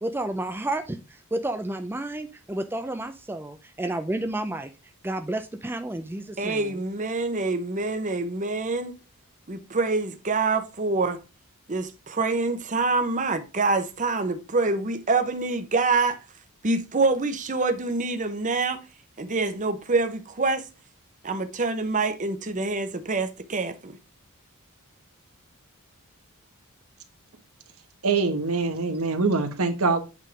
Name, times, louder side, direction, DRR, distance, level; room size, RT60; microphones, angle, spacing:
voice 1, 0.0-1.0 1.3-4.7 5.0-6.7, right 1 dB, 10° right, 0.4 m, -31 dB
voice 2, 6.4-9.0 9.5-11.2 11.7-16.2 16.6-18.8 19.2-20.7 21.2-23.9, right 3 dB, 35° right, 0.8 m, -26 dB
voice 3, 28.0-30.0, right 4 dB, 75° right, 1.2 m, -24 dB
8.2 x 3.7 x 4.9 m
head